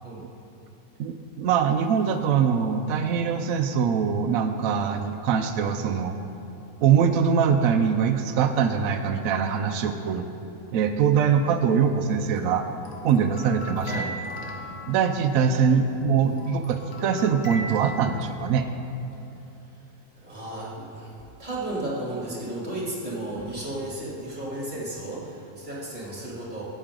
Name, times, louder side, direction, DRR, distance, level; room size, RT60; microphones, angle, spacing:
voice 1, 1.0-6.1 6.8-10.2 10.7-12.6 13.0-14.0 14.9-18.7, right 7 dB, 75° right, 5 dB, 1.0 m, -23 dB
sound 1, 11.8-15.8 16.2-18.6, equal, 80° left, 1.6 m, -39 dB
voice 2, 13.8-14.1 20.2-21.1 21.4-26.6, right 1 dB, 30° right, -7 dB, 2.7 m, -33 dB
13.5 x 8.4 x 3.7 m, 2.9 s
omnidirectional pair, 1.6 m